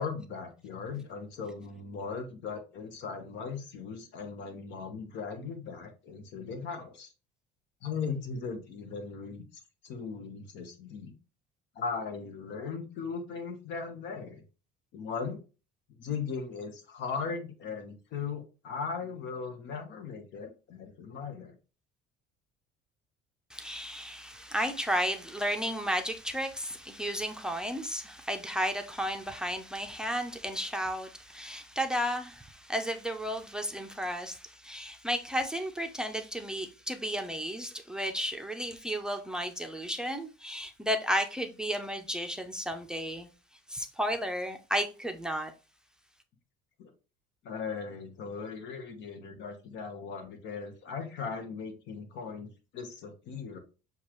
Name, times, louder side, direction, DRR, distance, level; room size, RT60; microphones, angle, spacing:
voice 1, 0.0-7.1 7.8-9.4 9.8-11.1 11.7-14.4 14.9-15.4 16.0-21.5 46.8-46.9 47.4-53.6, left 5 dB, 65° left, 1.2 m, -38 dB
voice 2, 23.5-43.3 43.7-45.5, equal, 5° right, 0.6 m, -33 dB
7.1 x 2.4 x 3.1 m
cardioid pair, 115°, 20 cm